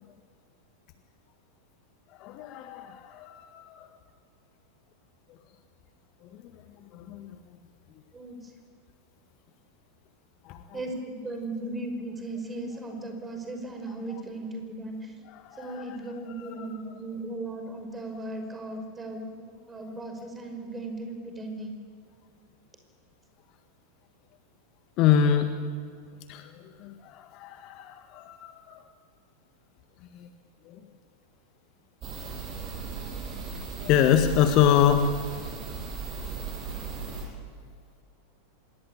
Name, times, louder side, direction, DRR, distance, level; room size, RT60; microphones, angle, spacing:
voice 1, 2.2-3.9 6.9-7.4 10.4-10.8 15.3-16.0 16.4-16.7 25.0-25.5 26.3-28.8 30.1-30.3 30.6-30.8 33.4-33.5 33.8-35.1, left 9 dB, 40° left, 8 dB, 1.6 m, -25 dB
voice 2, 8.1-8.5 10.7-15.2 15.6-21.7, right 2 dB, 15° right, 5 dB, 5.8 m, -37 dB
sound 1, 32.0-37.3, right 5 dB, 30° right, 7.1 m, -37 dB
27.0 x 20.5 x 8.8 m, 2.2 s
figure-of-eight pair, 90°, 0 cm